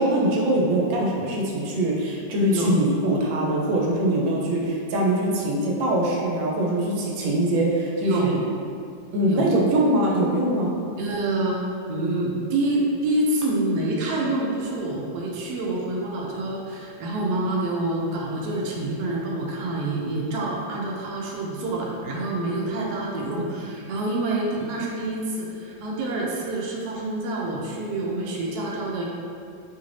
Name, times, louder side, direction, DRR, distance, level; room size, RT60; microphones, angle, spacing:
voice 1, 0.0-8.4 9.1-10.7, right 1 dB, 85° right, -3 dB, 1.3 m, -22 dB
voice 2, 11.0-11.6 11.9-29.1, right 2 dB, 70° right, -3 dB, 1.0 m, -27 dB
3.1 x 2.5 x 3.1 m, 2.4 s
omnidirectional pair, 2.0 m